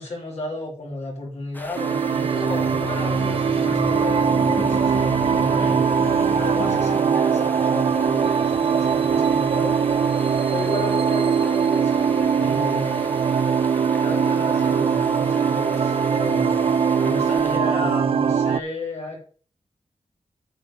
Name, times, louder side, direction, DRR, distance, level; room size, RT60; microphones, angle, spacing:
voice 1, 0.0-5.8 6.4-9.8 10.5-13.1 13.9-19.2, left 2 dB, 75° left, -3 dB, 3.1 m, -33 dB
Stream, 1.5-17.6, left 1 dB, 15° left, 0.9 m, -39 dB
sound 1, 1.8-18.6, right 6 dB, 55° right, 0.4 m, -21 dB
sound 2, 2.2-7.0, left 4 dB, 55° left, 0.6 m, -32 dB
8.5 x 5.1 x 6.7 m, 0.43 s
wide cardioid pair, 135°, 11 cm